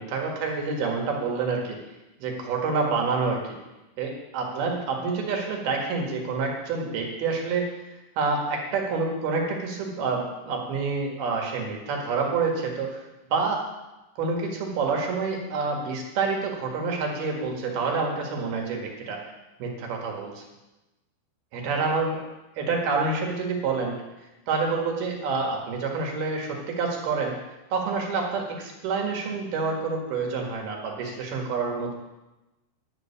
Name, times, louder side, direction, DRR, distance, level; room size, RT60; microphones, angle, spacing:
voice 1, 0.0-1.8 2.2-3.6 4.0-7.8 8.2-13.0 13.3-13.6 14.2-19.2 19.6-20.4 21.5-22.2 22.6-24.0 24.5-27.4 27.7-31.9, right 4 dB, 65° right, 1 dB, 3.5 m, -28 dB
11.0 x 6.7 x 8.4 m, 1.0 s
omnidirectional pair, 5.2 m